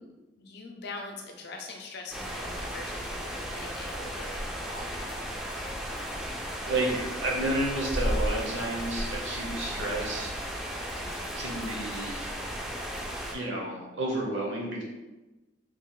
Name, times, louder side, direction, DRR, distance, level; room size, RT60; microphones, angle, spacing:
voice 1, 0.0-5.2 10.9-11.2, left 3 dB, 60° left, 2 dB, 0.5 m, -43 dB
sound 1, 2.1-13.3, equal, ahead, 0.4 m, -34 dB
voice 2, 6.7-10.9 11.3-12.3 13.3-14.8, right 1 dB, 70° right, -2 dB, 0.9 m, -31 dB
3.0 x 2.4 x 3.6 m, 1.1 s
head